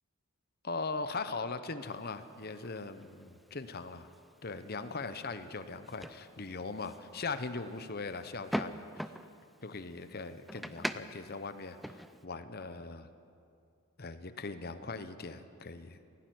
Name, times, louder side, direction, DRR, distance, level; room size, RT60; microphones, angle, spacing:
voice 1, 0.6-4.1 4.4-8.8 9.6-12.0 12.2-13.1 14.0-16.0, left 3 dB, 45° left, 10 dB, 1.0 m, -40 dB
sound 1, 1.8-12.3, equal, ahead, 0.5 m, -44 dB
17.0 x 16.0 x 9.4 m, 2.5 s
head